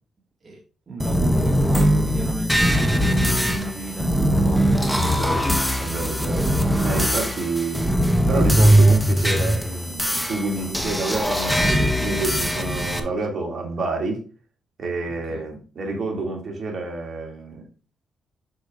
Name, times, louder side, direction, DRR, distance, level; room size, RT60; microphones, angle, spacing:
voice 1, 0.9-5.1 15.3-15.5, right 2 dB, 40° right, 1.8 m, -34 dB
sound 1, 1.0-13.0, equal, ahead, 1.0 m, -20 dB
voice 2, 5.0-5.5 5.8-6.6 6.8-7.9 8.3-14.2 14.8-17.6, right 3 dB, 55° right, 2.3 m, -28 dB
6.7 x 6.4 x 2.4 m
cardioid pair, 70°, 0 cm